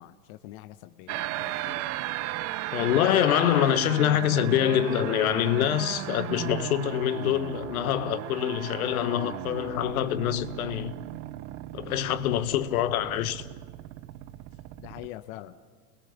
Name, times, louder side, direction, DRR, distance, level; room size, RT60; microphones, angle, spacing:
voice 1, 0.0-1.9 12.6-12.7 14.8-15.6, left 15 dB, 45° left, 1.1 m, -44 dB
sound 1, 1.1-15.1, right 15 dB, 35° right, 0.7 m, -36 dB
voice 2, 2.7-10.9 11.7-13.5, left 11 dB, 65° left, 1.4 m, -25 dB
29.5 x 21.0 x 7.2 m
hypercardioid pair, 110°, 47 cm